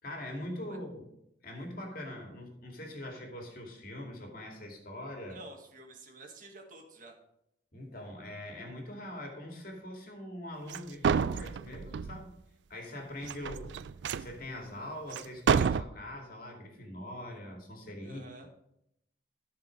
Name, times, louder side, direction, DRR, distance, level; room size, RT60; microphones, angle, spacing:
voice 1, 0.0-1.1 1.4-5.4 7.7-12.3 12.7-13.8 14.2-18.5, left 1 dB, 55° left, 1 dB, 2.4 m, -42 dB
voice 2, 5.3-7.1 13.4-13.5 18.0-18.5, right 2 dB, 50° right, 2 dB, 1.7 m, -50 dB
sound 1, 10.7-10.8 11.0-12.2 13.2-14.3 15.1-15.2 15.5-15.8, right 6 dB, 75° right, 0.3 m, -29 dB
13.5 x 5.0 x 5.2 m, 0.79 s
head